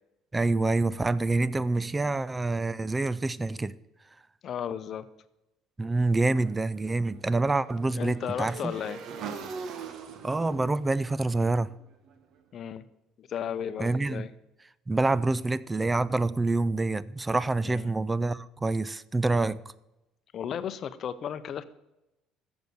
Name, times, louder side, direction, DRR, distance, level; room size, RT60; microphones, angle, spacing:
voice 1, 0.3-3.7 5.8-8.7 10.2-11.7 13.8-14.3 14.9-19.6, right 2 dB, 20° right, 0.4 m, -27 dB
voice 2, 4.4-5.1 8.0-9.0 12.5-12.9 13.2-14.3 17.6-17.9 20.3-21.6, left 8 dB, 50° left, 0.7 m, -34 dB
Motorcycle / Engine, 6.3-12.4, right 6 dB, 60° right, 1.0 m, -43 dB
7.0 x 6.8 x 7.9 m
supercardioid pair, 85°, 0 cm